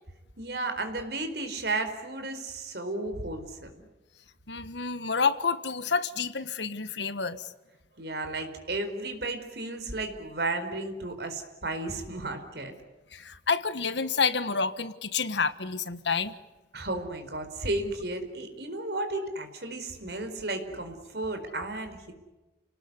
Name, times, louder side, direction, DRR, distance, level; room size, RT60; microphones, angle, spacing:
voice 1, 0.4-3.9 8.0-12.7 16.7-22.1, right 2 dB, 65° right, 7 dB, 4.5 m, -33 dB
voice 2, 4.5-7.5 13.1-16.4, left 5 dB, 80° left, 13 dB, 1.5 m, -29 dB
30.0 x 19.0 x 9.8 m, 1.1 s
head